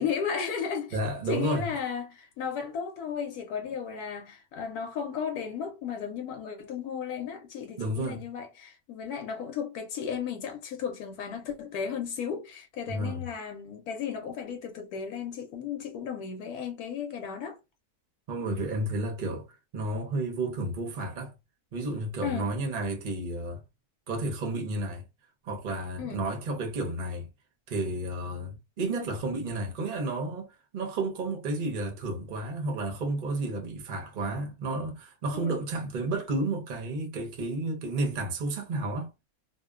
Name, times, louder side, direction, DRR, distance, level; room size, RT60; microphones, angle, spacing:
voice 1, 0.0-1.0 1.3-17.6 22.2-22.5 26.0-26.2 35.3-35.6, left 7 dB, 85° left, 1.1 m, -34 dB
voice 2, 0.9-1.7 7.8-8.2 12.9-13.3 18.3-19.5 19.7-21.3 21.7-23.6 24.1-25.0 25.4-27.3 27.7-30.5 30.7-39.1, right 2 dB, 45° right, 0.6 m, -31 dB
2.7 x 2.1 x 2.2 m
omnidirectional pair, 1.6 m